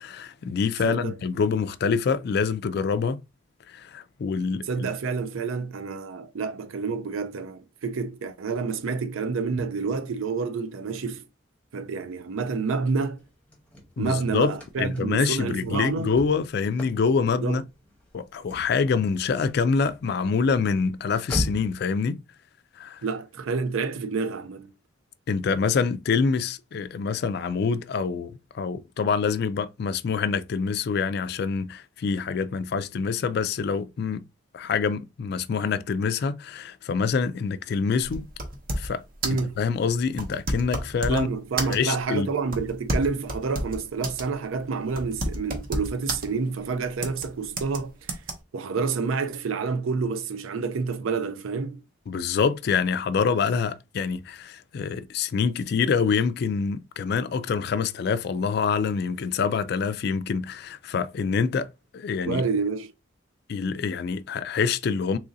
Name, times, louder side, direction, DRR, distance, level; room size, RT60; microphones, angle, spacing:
voice 1, 0.0-3.2 3.7-4.9 14.0-14.5 14.8-17.6 18.1-22.2 22.8-23.0 25.3-34.2 34.5-38.3 38.7-39.0 39.6-41.3 41.7-42.3 52.1-61.7 61.9-62.4 63.5-65.2, left 5 dB, 50° left, 0.3 m, -26 dB
voice 2, 0.8-1.2 4.7-11.3 11.7-13.2 14.0-16.2 17.4-17.6 23.0-24.7 39.2-39.6 41.1-48.1 48.5-51.8 62.3-62.9, right 4 dB, 80° right, 0.4 m, -28 dB
Car / Slam, 13.2-21.9, left 1 dB, 5° left, 0.9 m, -39 dB
sound 1, 38.0-39.0 39.2-39.5 40.1-41.2 41.6-42.0 42.5-44.3 44.6-44.7 45.0-46.3 47.0-47.3 47.6-47.8 48.1-48.3, right 1 dB, 45° right, 0.8 m, -30 dB
3.0 x 2.6 x 3.8 m
head